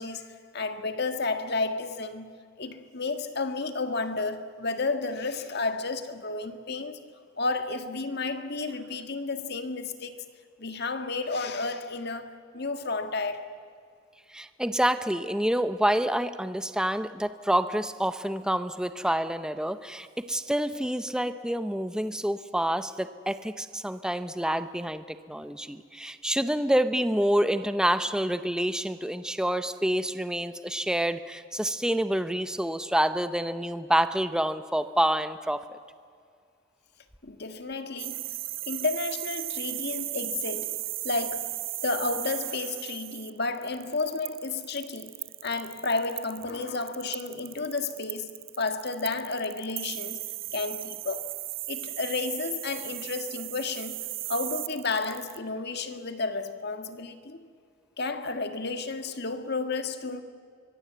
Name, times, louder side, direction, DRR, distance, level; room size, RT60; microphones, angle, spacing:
voice 1, 0.0-2.3 2.6-7.0 7.4-10.2 10.6-13.5 37.2-38.4 38.6-45.2 45.4-50.2 50.5-51.3 51.7-54.0 54.3-57.4 58.0-60.2, left 3 dB, 55° left, 1.7 m, -32 dB
voice 2, 14.3-35.8, right 1 dB, 5° right, 0.7 m, -27 dB
sound 1, 38.0-55.4, right 17 dB, 45° right, 0.5 m, -36 dB
25.0 x 22.0 x 8.1 m
head